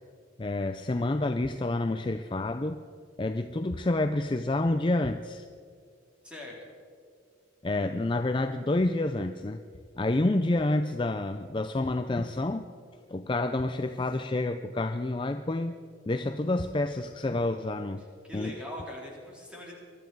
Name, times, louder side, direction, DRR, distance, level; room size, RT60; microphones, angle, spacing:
voice 1, 0.4-2.8 3.2-5.5 7.6-9.6 10.0-12.7 13.1-15.8 16.1-18.0 18.3-18.5, left 2 dB, 25° left, 8 dB, 0.4 m, -28 dB
voice 2, 6.2-6.6 18.2-19.8, left 1 dB, 5° right, -4 dB, 3.8 m, -41 dB
23.0 x 13.0 x 4.7 m, 2.2 s
head